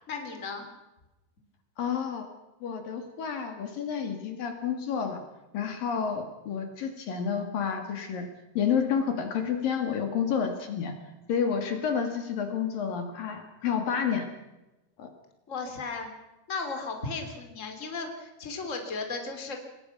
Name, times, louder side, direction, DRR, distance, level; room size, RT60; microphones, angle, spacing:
voice 1, 0.1-0.7 15.5-16.1 16.5-19.6, left 4 dB, 20° left, 5 dB, 3.2 m, -35 dB
voice 2, 1.8-2.3 2.6-5.2 5.5-8.3 8.6-10.9 11.3-14.3 15.0-15.1, left 7 dB, 65° left, 6 dB, 3.7 m, -30 dB
28.0 x 20.5 x 6.0 m, 0.99 s
omnidirectional pair, 4.6 m